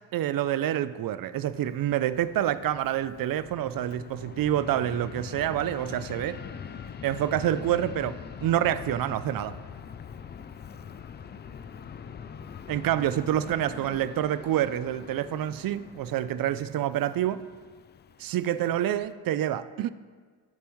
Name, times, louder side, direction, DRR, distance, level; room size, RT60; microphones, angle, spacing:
voice 1, 0.1-6.4 7.0-9.6 12.7-17.4 18.2-19.9, right 11 dB, 50° right, 0.5 m, -27 dB
Fixed-wing aircraft airplane, 1.3-19.1, left 7 dB, 25° left, 0.3 m, -43 dB
15.5 x 6.9 x 3.1 m
cardioid pair, 95°, 44 cm